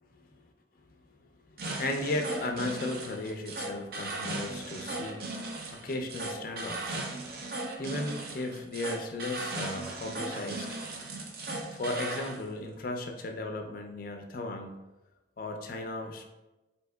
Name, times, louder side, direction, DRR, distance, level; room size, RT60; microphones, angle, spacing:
voice 1, 1.5-5.4 5.7-7.0 7.8-10.8 11.7-14.7 15.4-16.2, left 2 dB, 50° left, 4 dB, 0.4 m, -35 dB
sound 1, 1.6-12.4, right 2 dB, 55° right, 0.5 m, -37 dB
4.5 x 2.7 x 2.2 m, 1.0 s
head